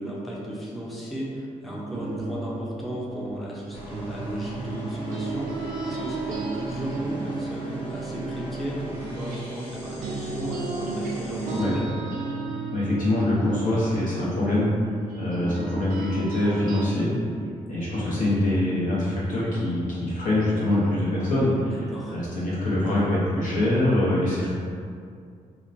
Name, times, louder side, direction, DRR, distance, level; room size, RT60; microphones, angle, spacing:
voice 1, 0.0-11.8 21.6-22.2, right 1 dB, ahead, -5 dB, 0.5 m, -34 dB
sound 1, 1.9-9.7 10.0-16.9, right 3 dB, 75° right, 0.4 m, -34 dB
sound 2, 3.7-11.6, right 1 dB, 40° left, 0.8 m, -37 dB
voice 2, 12.7-14.7 15.1-17.1 17.7-24.5, left 1 dB, 70° left, -8 dB, 0.9 m, -24 dB
2.9 x 2.1 x 2.5 m, 2.3 s
cardioid pair, 70°, 14 cm